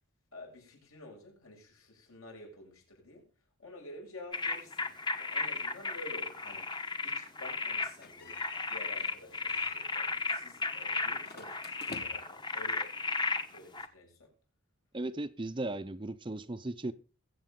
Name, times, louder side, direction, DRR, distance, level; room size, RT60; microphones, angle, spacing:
voice 1, 0.3-3.3 3.6-4.9 5.2-8.4 8.7-13.0 13.5-14.3, left 1 dB, 70° left, 7.3 m, -50 dB
sound 1, 4.3-13.9, left 3 dB, 20° left, 1.0 m, -35 dB
sound 2, 8.0-9.2 9.5-9.9 11.2-12.4, left 3 dB, 45° left, 1.6 m, -49 dB
voice 2, 14.9-16.9, right 2 dB, 20° right, 0.6 m, -36 dB
22.0 x 8.2 x 3.7 m
head